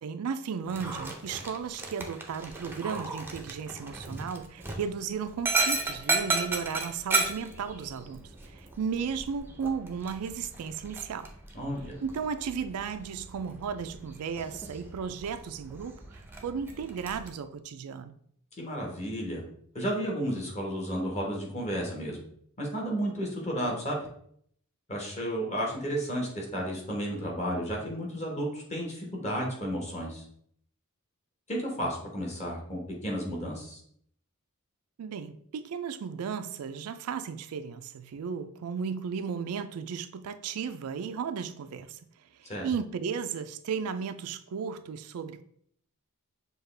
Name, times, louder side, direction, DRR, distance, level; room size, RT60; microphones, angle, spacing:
voice 1, 0.0-11.3 12.0-18.1 35.0-42.0 42.4-45.4, right 6 dB, 90° right, 0.4 m, -35 dB
Dog, 0.7-17.3, right 3 dB, 10° right, 0.6 m, -35 dB
voice 2, 11.5-12.0 18.6-19.4 19.7-22.2 22.6-24.1 24.9-30.2 31.5-33.8 42.4-42.7, equal, 30° left, 1.3 m, -32 dB
6.5 x 2.3 x 3.3 m
head